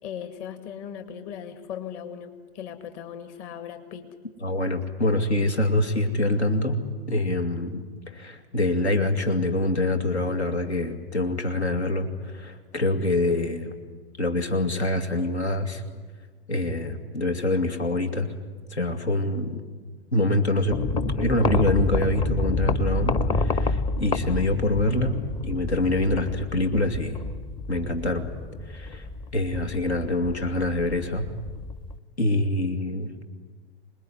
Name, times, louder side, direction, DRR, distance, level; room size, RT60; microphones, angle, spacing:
voice 1, 0.0-4.1, left 8 dB, 40° left, 8 dB, 2.3 m, -38 dB
voice 2, 4.4-6.8 7.1-13.7 14.2-15.8 16.5-18.3 18.7-19.6 20.1-27.2 27.7-28.3 28.6-31.3 32.2-33.2, left 2 dB, 80° left, 6 dB, 2.5 m, -25 dB
sound 1, 20.7-32.0, left 3 dB, 15° left, 0.8 m, -29 dB
26.5 x 20.0 x 9.6 m, 1.4 s
figure-of-eight pair, 105°, 33 cm